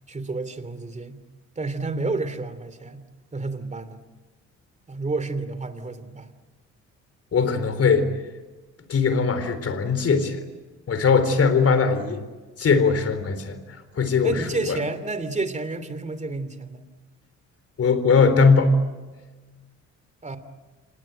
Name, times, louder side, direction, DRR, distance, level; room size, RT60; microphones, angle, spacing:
voice 1, 0.1-1.2 1.6-3.0 3.3-4.0 4.9-6.3 14.2-16.9 20.2-20.4, right 3 dB, 25° right, 11 dB, 3.0 m, -30 dB
voice 2, 7.3-8.1 8.9-10.4 10.9-12.2 12.6-14.8 17.8-18.8, left 5 dB, 50° left, 11 dB, 4.0 m, -20 dB
27.5 x 19.5 x 9.0 m, 1.2 s
cardioid pair, 90°, 30 cm